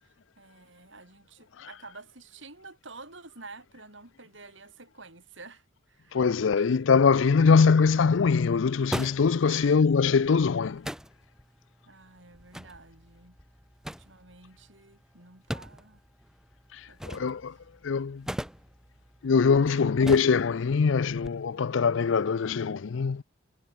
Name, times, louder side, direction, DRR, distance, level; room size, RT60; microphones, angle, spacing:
voice 1, 0.0-6.8 9.5-9.7 10.0-10.2 11.9-13.4 13.9-16.0 16.9-17.6 19.7-20.1, right 3 dB, 70° right, 8.0 m, -50 dB
voice 2, 6.1-10.8 17.1-17.5 17.8-18.2 19.2-23.2, left 5 dB, 75° left, 0.5 m, -22 dB
sound 1, 7.3-21.3, equal, 5° right, 3.4 m, -42 dB
head